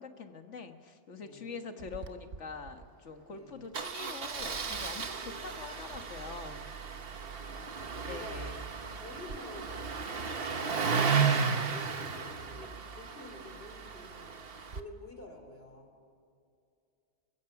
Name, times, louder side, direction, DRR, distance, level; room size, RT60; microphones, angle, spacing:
voice 1, 0.0-6.7 8.0-8.6, left 4 dB, 85° left, 6 dB, 1.8 m, -44 dB
voice 2, 1.2-1.5 3.3-3.7 5.2-5.5 7.0-8.4 8.9-14.5 14.7-15.9, left 2 dB, 55° left, 3 dB, 4.2 m, -49 dB
Engine starting, 1.8-2.1 2.3-2.4 2.7-2.8 3.7-14.8, right 5 dB, 55° right, 1.3 m, -34 dB
29.0 x 16.0 x 5.9 m, 2.4 s
omnidirectional pair, 1.2 m